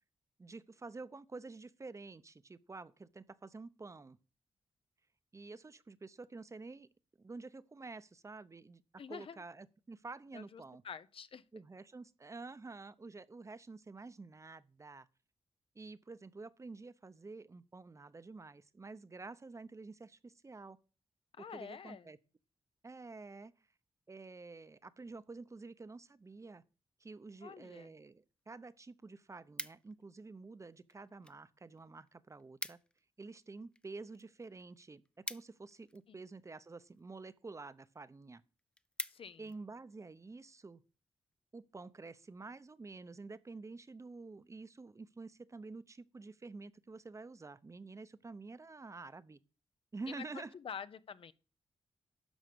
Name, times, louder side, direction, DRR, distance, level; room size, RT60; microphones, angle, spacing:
voice 1, 0.4-4.2 5.3-6.9 7.2-8.8 9.1-10.8 11.5-15.1 15.7-20.8 21.4-22.2 22.8-23.5 24.1-26.6 27.0-32.8 33.2-38.4 39.4-40.8 41.5-49.4 49.9-50.5, right 3 dB, 30° right, 0.7 m, -49 dB
voice 2, 9.0-9.4 10.3-11.4 21.4-22.1 27.4-27.9 36.1-36.2 39.0-39.4 50.1-51.3, left 7 dB, 65° left, 0.7 m, -48 dB
sound 1, 29.0-30.2 30.9-31.4 31.7-31.8 32.1-32.2 32.4-33.0 33.4-36.2 36.9-37.3 37.8-37.9 38.2-38.3 38.6-39.6 40.1-40.3, left 1 dB, 10° left, 0.5 m, -46 dB
12.5 x 5.0 x 6.8 m
cardioid pair, 85°, 10 cm